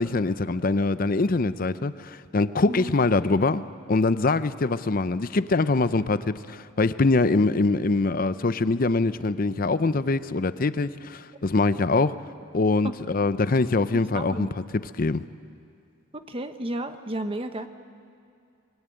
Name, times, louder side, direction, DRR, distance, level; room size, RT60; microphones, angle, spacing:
voice 1, 0.0-3.6 3.9-12.2 12.5-15.2, left 3 dB, 45° left, 14 dB, 0.6 m, -23 dB
voice 2, 13.9-14.5 16.1-17.7, right 1 dB, 25° right, 8 dB, 1.1 m, -33 dB
24.0 x 22.0 x 9.1 m, 2.4 s
head